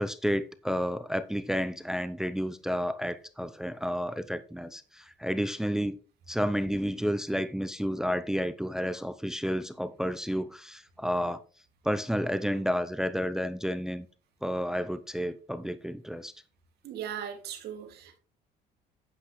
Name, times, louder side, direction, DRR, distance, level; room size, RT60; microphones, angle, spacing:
voice 1, 0.0-6.0 6.3-11.4 11.8-14.1 14.4-16.3, equal, 5° right, 0.6 m, -31 dB
voice 2, 16.8-18.2, right 9 dB, 75° right, 2.3 m, -38 dB
9.9 x 8.3 x 3.2 m
cardioid pair, 110°, 17 cm